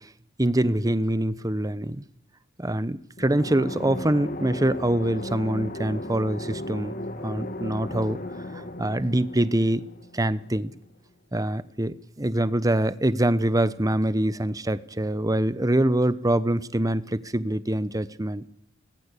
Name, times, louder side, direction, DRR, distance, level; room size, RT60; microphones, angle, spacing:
voice 1, 0.4-2.0 2.6-6.9 7.2-8.2 8.5-9.8 10.1-10.7 11.3-18.4, right 1 dB, 20° right, 15 dB, 1.0 m, -24 dB
sound 1, 3.2-10.8, left 1 dB, 45° left, 2.1 m, -36 dB
25.5 x 20.0 x 8.4 m, 0.71 s
head